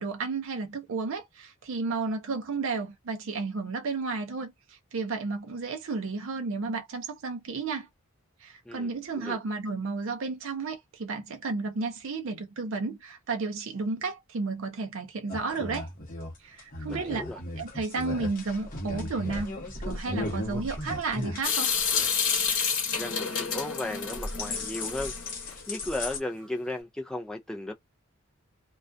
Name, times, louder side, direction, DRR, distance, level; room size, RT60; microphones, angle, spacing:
voice 1, 0.0-7.9 8.4-15.9 16.4-17.2 17.6-19.5 19.8-21.7, right 4 dB, 65° right, 0.5 m, -32 dB
sound 1, 15.3-22.8 23.2-23.5 23.8-26.2, left 2 dB, 40° left, 0.8 m, -36 dB
voice 2, 16.9-17.4 22.9-27.7, left 1 dB, 5° left, 0.3 m, -35 dB
Water tap faucet / Sink (filling or washing) / Drip, 21.4-25.5, left 6 dB, 75° left, 0.9 m, -29 dB
2.3 x 2.2 x 2.5 m
head